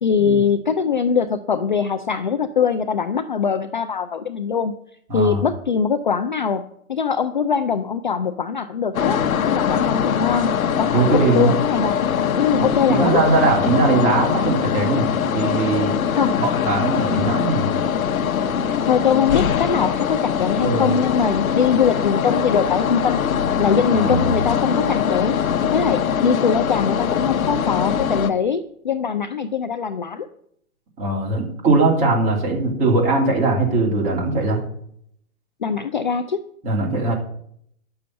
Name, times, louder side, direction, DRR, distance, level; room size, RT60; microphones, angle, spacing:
voice 1, 0.0-4.7 5.1-6.6 6.9-9.2 9.5-10.5 10.8-11.9 12.4-13.2 16.1-16.3 17.1-17.2 18.9-23.2 23.6-25.4 25.7-30.3 35.6-36.4, left 6 dB, 35° left, 10 dB, 0.4 m, -22 dB
voice 2, 5.1-5.4 10.9-11.5 13.0-15.9 16.2-17.7 20.6-20.9 23.9-24.3 31.0-34.6 36.6-37.1, right 3 dB, 15° right, -2 dB, 2.9 m, -20 dB
sound 1, 8.9-28.3, left 8 dB, 70° left, 1.2 m, -22 dB
10.5 x 7.0 x 7.6 m, 0.69 s
hypercardioid pair, 165°, 43 cm